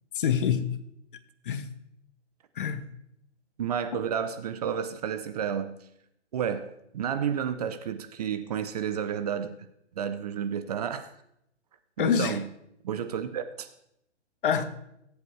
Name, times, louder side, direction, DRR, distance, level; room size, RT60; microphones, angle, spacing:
voice 1, 0.1-0.8 1.4-1.7 2.5-2.9 3.9-4.0 12.0-12.4 14.4-14.6, left 7 dB, 45° left, 11 dB, 1.1 m, -26 dB
voice 2, 3.6-5.8 6.3-9.5 10.0-11.1 12.0-12.4 12.8-13.7, right 8 dB, 35° right, 10 dB, 0.6 m, -31 dB
19.0 x 8.2 x 3.2 m, 0.79 s
hypercardioid pair, 145°, 35 cm